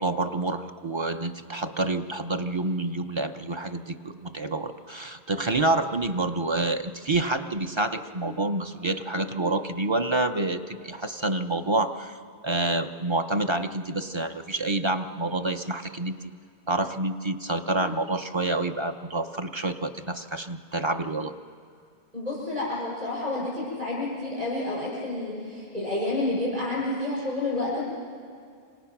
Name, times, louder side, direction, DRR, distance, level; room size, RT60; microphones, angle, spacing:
voice 1, 0.0-12.2 12.4-16.2 16.7-21.3, right 2 dB, 30° right, 7 dB, 0.7 m, -28 dB
voice 2, 22.1-27.8, left 2 dB, 45° right, -5 dB, 5.8 m, -29 dB
27.5 x 26.0 x 6.0 m, 2.2 s
omnidirectional pair, 1.1 m